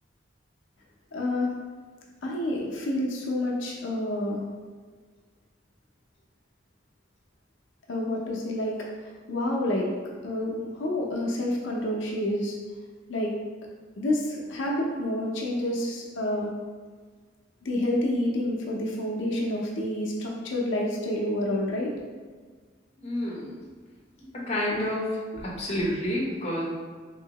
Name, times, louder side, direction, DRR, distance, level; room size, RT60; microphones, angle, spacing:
voice 1, 1.1-1.5 2.2-4.4 7.9-8.8 9.0-9.9 10.2-12.6 13.1-13.3 14.0-16.5 17.6-21.9, left 1 dB, 90° left, -2 dB, 0.5 m, -28 dB
voice 2, 23.0-23.7 24.5-25.0 25.4-26.6, left 1 dB, 35° left, -5 dB, 0.8 m, -29 dB
3.0 x 2.8 x 2.8 m, 1.5 s
head